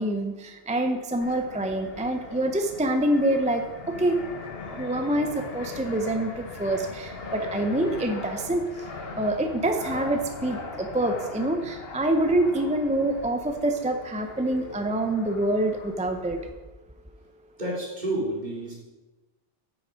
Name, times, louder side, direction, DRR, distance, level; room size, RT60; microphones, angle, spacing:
voice 1, 0.0-4.2 4.8-8.6 9.2-16.4, right 1 dB, 10° right, 5 dB, 0.4 m, -26 dB
Fixed-wing aircraft airplane, 1.2-16.5, left 3 dB, 70° left, 1.3 m, -40 dB
voice 2, 17.6-18.7, right 1 dB, 45° right, -5 dB, 3.0 m, -29 dB
8.8 x 6.7 x 5.1 m, 1.1 s
omnidirectional pair, 1.1 m